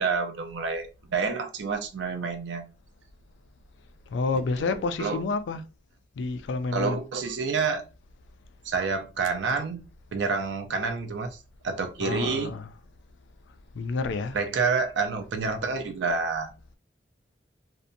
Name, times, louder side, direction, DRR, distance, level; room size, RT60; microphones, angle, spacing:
voice 1, 0.0-2.7 4.6-4.7 5.0-5.2 6.7-7.8 8.6-9.8 10.1-11.4 11.6-12.5 14.3-16.5, right 4 dB, 85° right, 0.5 m, -28 dB
voice 2, 4.1-5.6 6.2-7.0 12.0-12.7 13.7-14.4, left 3 dB, 90° left, 0.3 m, -29 dB
2.7 x 2.1 x 2.6 m
head